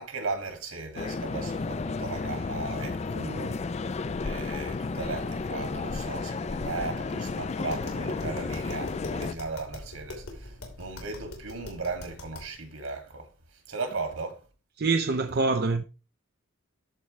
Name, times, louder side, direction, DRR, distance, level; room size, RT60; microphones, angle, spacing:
voice 1, 0.0-3.6 4.2-13.3 13.7-14.4, right 3 dB, 70° right, 2.3 m, -36 dB
sound 1, 1.0-9.3, left 4 dB, 30° left, 0.3 m, -32 dB
Tap, 7.6-12.6, left 1 dB, 80° left, 3.2 m, -43 dB
voice 2, 14.8-15.8, right 3 dB, 45° right, 0.5 m, -25 dB
13.5 x 4.7 x 3.2 m
head